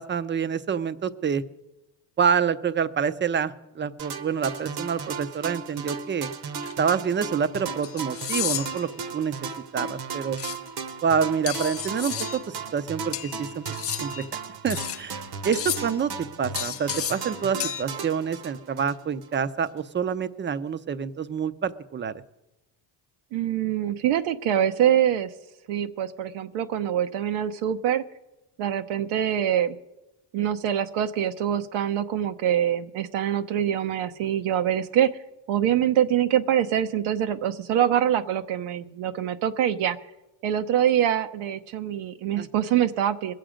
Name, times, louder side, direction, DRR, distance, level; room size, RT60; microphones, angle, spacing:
voice 1, 0.0-1.4 2.2-6.3 6.8-9.3 9.7-10.4 11.0-13.6 14.0-14.2 14.6-16.1 16.4-22.2 42.4-42.5, right 7 dB, 25° right, 14 dB, 0.6 m, -27 dB
sound 1, 4.0-19.4, right 5 dB, 50° right, 1.1 m, -36 dB
sound 2, 6.6-6.7 7.8-8.9 10.4-10.6 11.5-12.4 13.1-14.3 14.7-15.0 15.5-16.0 16.5-17.3 17.6-17.8, left 10 dB, 30° left, 0.5 m, -32 dB
voice 2, 23.3-25.3 25.7-28.0 28.6-29.8 30.3-35.1 35.5-40.0 40.4-43.3, right 10 dB, 80° right, 9 dB, 1.0 m, -24 dB
21.5 x 7.7 x 5.1 m, 0.97 s
cardioid pair, 105°, 48 cm